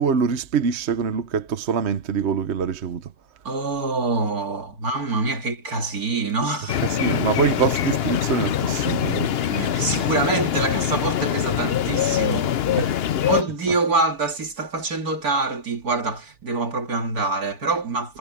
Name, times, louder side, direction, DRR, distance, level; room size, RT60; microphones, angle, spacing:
voice 1, 0.0-3.1 6.9-9.5 12.8-12.9, right 6 dB, 50° right, 1.2 m, -24 dB
voice 2, 3.4-6.8 9.5-12.5 12.8-12.9 13.3-18.2, right 3 dB, 80° right, 3.1 m, -25 dB
sound 1, 6.7-13.4, left 10 dB, 55° left, 0.7 m, -23 dB
omnidirectional pair, 1.6 m